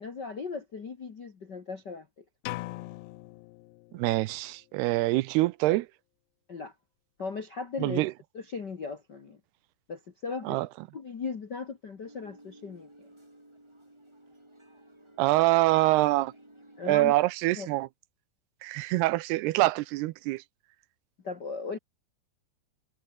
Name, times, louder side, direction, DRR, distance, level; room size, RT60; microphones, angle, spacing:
voice 1, 0.0-2.1 6.5-6.7 7.2-8.0 8.3-9.4 9.9-10.6 10.9-13.1 16.8-17.2 17.6-17.7 21.2-21.8, left 5 dB, 55° left, 1.1 m, -37 dB
sound 1, 2.4-4.3, left 20 dB, 85° left, 2.9 m, -40 dB
voice 2, 3.9-5.9 7.8-8.1 10.5-10.7 15.2-16.3 16.9-17.9 18.6-20.4, right 19 dB, 80° right, 2.6 m, -25 dB
sound 2, 12.0-17.1, right 1 dB, 5° right, 3.5 m, -55 dB
omnidirectional pair, 4.8 m